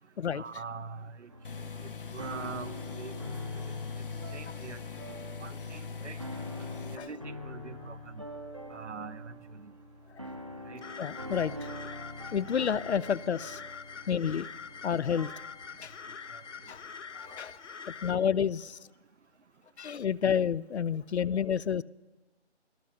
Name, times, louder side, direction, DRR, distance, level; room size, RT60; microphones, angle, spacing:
voice 1, 0.3-1.3 1.8-3.2 4.3-4.8 5.4-6.2 6.9-8.2 8.7-9.7 10.7-10.8 16.3-16.4, right 6 dB, 85° right, 13 dB, 0.9 m, -43 dB
sound 1, 1.3-17.5, left 1 dB, 25° right, 0.6 m, -45 dB
sound 2, 1.4-7.0, left 5 dB, 50° left, 1.0 m, -40 dB
sound 3, 10.8-18.1, left 6 dB, 90° left, 0.9 m, -45 dB
voice 2, 11.0-11.7 12.3-13.6 14.1-14.5 14.8-15.3 15.8-15.9 16.7-16.8 17.2-17.6 18.0-18.8 19.8-21.8, left 8 dB, 70° left, 22 dB, 0.5 m, -29 dB
18.5 x 13.0 x 5.7 m, 1.2 s
hypercardioid pair, 180°, 34 cm